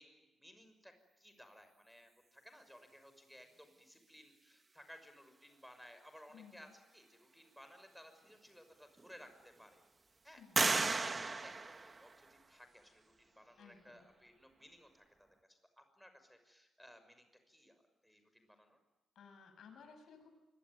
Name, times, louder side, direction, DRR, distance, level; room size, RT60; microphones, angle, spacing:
voice 1, 0.0-9.8 10.2-18.8, equal, ahead, 7 dB, 6.0 m, -59 dB
voice 2, 6.3-6.7 10.4-10.7 13.6-14.1 19.2-20.4, left 6 dB, 75° left, 7 dB, 7.1 m, -58 dB
sound 1, 8.3-8.4 9.0-9.6 10.5-12.5, right 3 dB, 30° right, 1.5 m, -35 dB
26.0 x 23.5 x 9.8 m, 1.0 s
cardioid pair, 110°, 0 cm